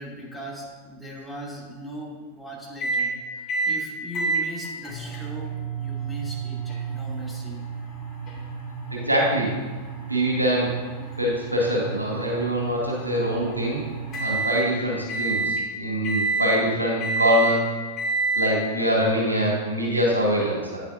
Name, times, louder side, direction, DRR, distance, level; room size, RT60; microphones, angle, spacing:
voice 1, 0.0-7.6, equal, 5° left, -5 dB, 2.6 m, -39 dB
sound 1, 2.8-3.1 3.5-3.8 4.1-14.7 15.1-15.6 16.0-16.6 17.0-17.6 18.0-18.5, right 3 dB, 30° left, 2.9 m, -29 dB
voice 2, 8.9-9.5 10.1-10.7 11.2-13.8 14.2-17.7 18.3-20.8, equal, 85° right, -4 dB, 2.3 m, -24 dB
10.5 x 9.9 x 2.6 m, 1.4 s
figure-of-eight pair, 90°, 0 cm